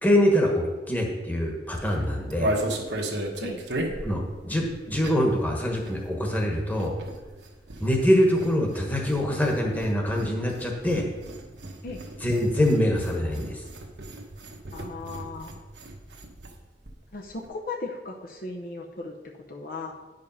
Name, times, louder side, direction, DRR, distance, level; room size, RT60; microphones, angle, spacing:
voice 1, 0.0-2.5 4.0-6.9 7.8-11.0 12.2-13.6, equal, 10° left, 0 dB, 1.3 m, -24 dB
sound 1, 1.7-5.4 5.7-16.6 16.9-17.0 17.2-17.5, right 1 dB, 70° right, 1.2 m, -35 dB
voice 2, 14.7-15.6 17.1-19.9, left 3 dB, 50° left, 1 dB, 0.7 m, -37 dB
9.6 x 5.2 x 5.5 m, 1.3 s
head